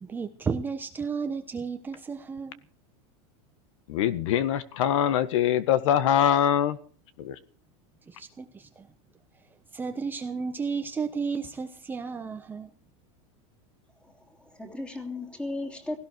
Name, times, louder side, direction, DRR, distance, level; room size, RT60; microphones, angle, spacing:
voice 1, 0.0-2.6 8.1-8.9 9.7-12.7, right 5 dB, 10° right, 1.0 m, -33 dB
voice 2, 3.9-6.8 7.2-7.3, left 10 dB, 65° left, 1.7 m, -23 dB
voice 3, 14.0-16.0, left 2 dB, 5° left, 3.2 m, -36 dB
17.5 x 17.0 x 4.7 m
supercardioid pair, 160°, 17 cm